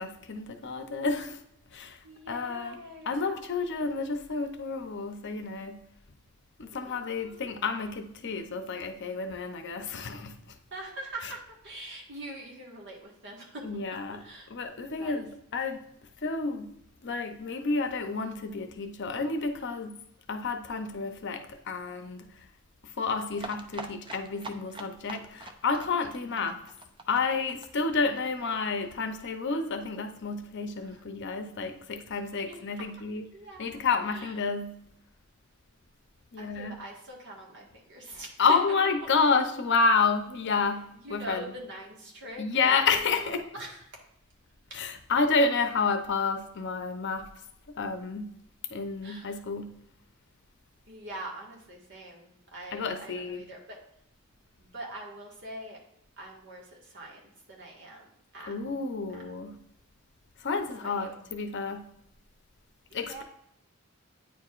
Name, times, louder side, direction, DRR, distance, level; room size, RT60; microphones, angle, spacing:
voice 1, 0.0-1.4 1.7-2.0 2.3-2.8 3.1-5.8 6.6-10.5 13.6-14.2 14.5-15.8 16.2-16.8 17.0-20.0 20.3-22.4 22.8-26.6 27.1-33.3 33.6-34.8 36.3-36.8 38.4-41.5 42.4-43.4 44.7-47.3 47.8-48.4 48.7-49.8 52.7-53.4 58.5-59.6 60.4-61.9 62.9-63.2, left 4 dB, 55° left, 0.7 m, -30 dB
voice 2, 2.0-3.4 6.7-7.5 10.7-13.7 14.1-14.5 14.8-15.3 30.8-31.0 32.4-32.9 33.3-33.8 34.1-34.4 36.4-38.6 40.9-44.0 44.7-44.8 49.0-49.4 50.9-53.8 54.6-55.8 56.2-58.5 59.0-59.2 60.7-61.2 62.9-63.2, right 1 dB, 55° right, 1.7 m, -44 dB
sound 1, 23.3-28.9 29.2-29.3 29.5-29.6 29.9-30.0, right 3 dB, 25° right, 0.5 m, -43 dB
9.1 x 4.7 x 2.5 m
head